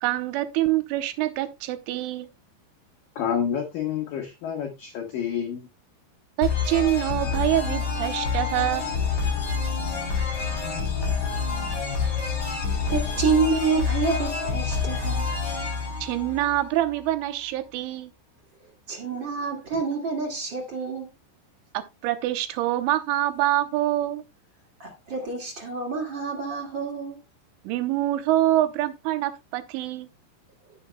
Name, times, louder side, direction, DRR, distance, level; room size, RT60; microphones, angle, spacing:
voice 1, 0.0-2.3 6.4-8.9 16.0-18.1 21.7-24.2 27.6-30.1, right 14 dB, 85° right, 3.2 m, -25 dB
voice 2, 3.2-5.7, left 8 dB, 90° left, 1.9 m, -29 dB
sound 1, 6.4-17.0, left 5 dB, 30° left, 2.9 m, -27 dB
voice 3, 12.9-15.3 15.8-15.9 18.9-21.1 24.8-27.2, right 4 dB, 45° right, 1.5 m, -27 dB
16.5 x 6.6 x 2.2 m
omnidirectional pair, 5.8 m